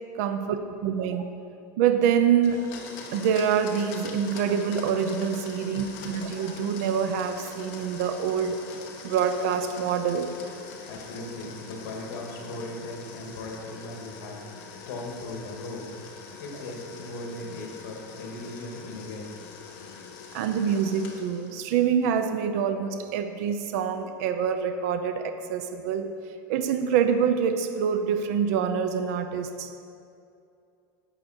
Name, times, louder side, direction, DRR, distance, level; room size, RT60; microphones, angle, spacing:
voice 1, 0.1-0.6 0.8-1.3 1.8-2.7 3.1-8.6 9.0-10.3 20.3-26.1 26.5-29.7, right 7 dB, 50° right, 8 dB, 0.6 m, -26 dB
Domestic sounds home sounds, 2.4-21.6, left 5 dB, 50° left, 1.4 m, -43 dB
voice 2, 10.7-15.9 16.4-19.5, left 2 dB, 75° left, 0 dB, 2.4 m, -38 dB
11.5 x 8.4 x 4.5 m, 2.5 s
supercardioid pair, 180°, 10 cm